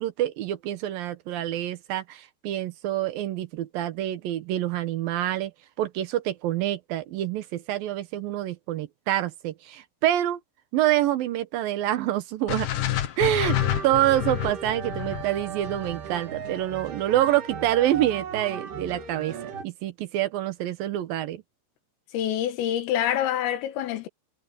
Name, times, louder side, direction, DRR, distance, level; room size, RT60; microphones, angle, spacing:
voice 1, 0.0-5.5 5.8-10.4 10.7-12.7 13.2-13.6 13.8-19.4 19.6-21.4, right 13 dB, 80° right, 2.0 m, -26 dB
sound 1, 12.5-16.7, left 13 dB, 65° left, 2.1 m, -29 dB
sound 2, 13.4-19.6, right 7 dB, 55° right, 4.5 m, -37 dB
voice 2, 22.1-24.1, left 11 dB, 85° left, 4.5 m, -26 dB
omnidirectional pair, 5.8 m